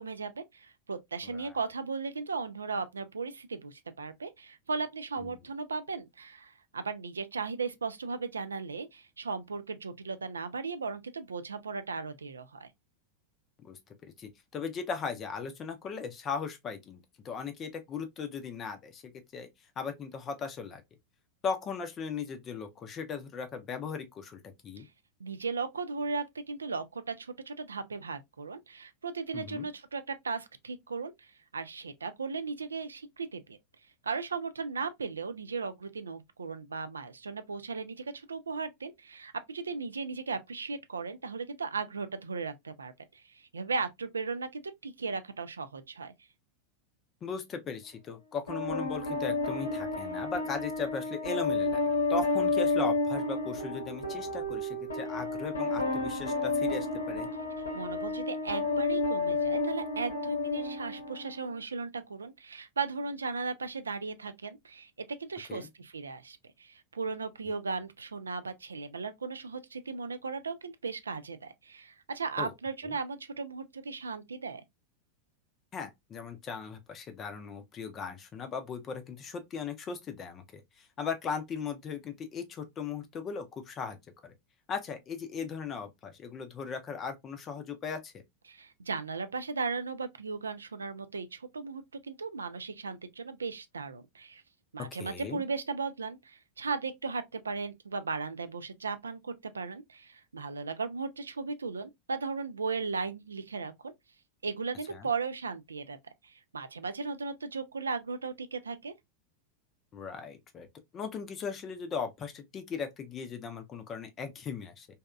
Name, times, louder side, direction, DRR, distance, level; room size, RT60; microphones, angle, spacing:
voice 1, 0.0-12.7 24.8-24.9 25.2-33.6 34.0-46.1 57.6-64.9 65.2-74.6 88.5-94.4 94.7-103.9 104.4-106.0 106.2-108.9, right 4 dB, 75° right, 0.3 m, -36 dB
voice 2, 13.6-19.5 19.8-20.8 21.4-24.9 29.3-29.7 47.2-51.8 52.1-57.3 65.5-65.7 72.4-72.5 75.7-84.0 84.2-84.3 84.7-88.2 94.8-95.4 104.9-105.1 109.9-110.7 110.9-114.9, left 5 dB, 30° left, 0.5 m, -38 dB
sound 1, 48.5-61.5, left 3 dB, 75° left, 0.8 m, -31 dB
2.7 x 2.2 x 2.3 m
figure-of-eight pair, 90°, 0 cm